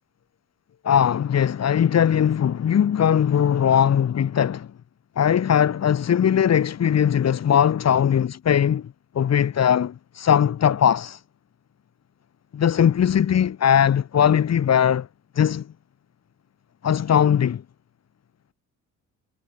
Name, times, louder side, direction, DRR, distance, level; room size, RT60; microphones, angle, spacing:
voice 1, 0.8-4.7 5.1-11.2 12.5-15.1 15.3-15.7 16.8-17.6, left 9 dB, 60° left, 7.0 m, -20 dB
cardioid pair, 90°, 30 cm